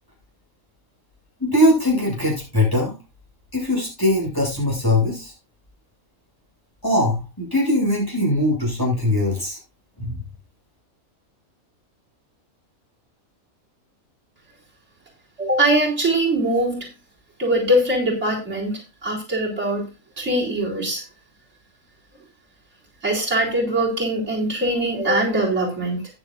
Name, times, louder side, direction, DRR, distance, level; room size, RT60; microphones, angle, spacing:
voice 1, 1.4-2.9 3.5-5.3 6.8-9.6 10.0-10.1, left 1 dB, 15° left, -3 dB, 7.9 m, -21 dB
voice 2, 15.4-16.9 17.4-18.7 19.0-19.8 20.2-21.0 23.0-26.0, right 1 dB, 50° right, -3 dB, 4.5 m, -22 dB
14.5 x 10.5 x 2.6 m, 0.28 s
omnidirectional pair, 1.5 m